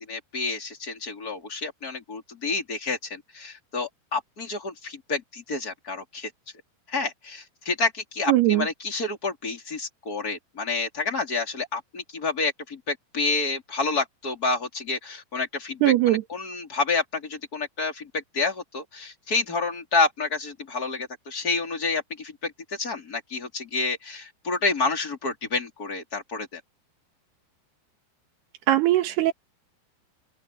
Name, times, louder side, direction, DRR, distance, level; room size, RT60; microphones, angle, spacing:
voice 1, 0.1-6.3 6.9-22.5 22.8-26.6, left 3 dB, 20° left, 3.7 m, -29 dB
voice 2, 8.3-8.7 15.8-16.2 28.7-29.3, right 14 dB, 65° right, 3.5 m, -20 dB
open air
omnidirectional pair, 5.4 m